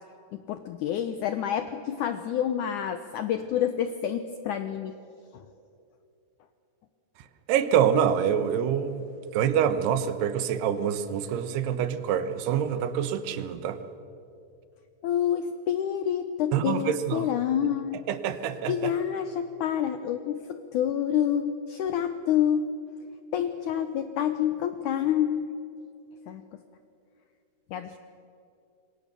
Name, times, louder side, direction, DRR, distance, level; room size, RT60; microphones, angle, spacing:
voice 1, 0.3-4.9 5.3-5.5 15.0-18.1 18.7-22.7 23.3-25.6 26.3-26.4 27.7-28.0, left 9 dB, 90° left, 9 dB, 1.7 m, -28 dB
voice 2, 7.5-13.8 16.5-17.3 18.1-18.9, right 8 dB, 90° right, 11 dB, 3.2 m, -26 dB
27.0 x 23.0 x 6.8 m, 2.6 s
omnidirectional pair, 4.6 m